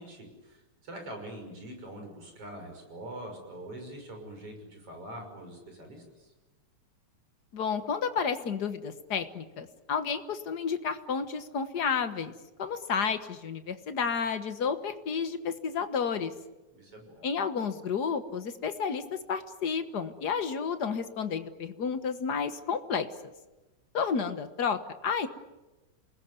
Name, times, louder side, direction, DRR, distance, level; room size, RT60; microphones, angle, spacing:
voice 1, 0.0-6.3 16.7-17.3, right 1 dB, 50° right, 3 dB, 7.0 m, -44 dB
voice 2, 7.5-12.3 12.6-16.3 17.2-23.1 23.9-25.3, left 6 dB, 50° left, 10 dB, 1.3 m, -31 dB
28.5 x 20.0 x 9.6 m, 1.1 s
omnidirectional pair, 3.4 m